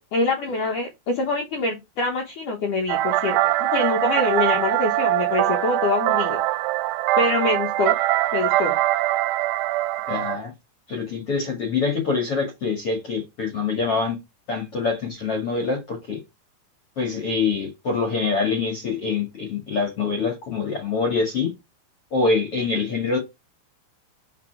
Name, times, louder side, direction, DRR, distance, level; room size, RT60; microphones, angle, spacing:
voice 1, 0.1-6.4 7.2-8.0 8.3-8.8, left 3 dB, 85° left, 1.8 m, -25 dB
sound 1, 2.9-10.4, right 16 dB, 80° right, 2.8 m, -22 dB
voice 2, 10.1-10.5 10.9-14.2 14.5-16.2 16.9-21.5 22.1-23.2, left 4 dB, 50° left, 1.7 m, -25 dB
5.9 x 5.4 x 4.7 m
omnidirectional pair, 5.8 m